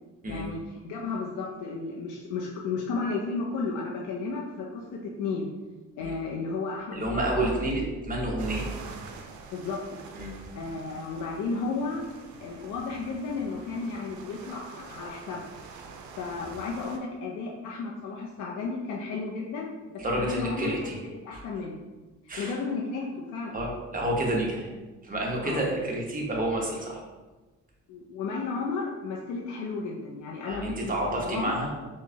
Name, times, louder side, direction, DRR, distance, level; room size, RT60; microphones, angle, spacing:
voice 1, 0.3-5.5 6.0-7.9 9.5-9.8 10.5-12.1 12.4-15.4 16.2-20.9 21.2-21.8 22.4-23.5 25.4-25.7 27.9-31.6, left 4 dB, 80° left, -3 dB, 0.6 m, -33 dB
voice 2, 6.9-8.7 10.1-10.3 10.7-10.9 20.0-21.0 21.3-21.4 22.3-22.5 23.5-24.7 25.0-27.0 30.5-31.7, right 1 dB, 30° right, -2 dB, 1.0 m, -29 dB
sound 1, 8.4-17.0, right 4 dB, 75° right, 0.5 m, -45 dB
4.6 x 2.2 x 2.8 m, 1.2 s
cardioid pair, 90°, 30 cm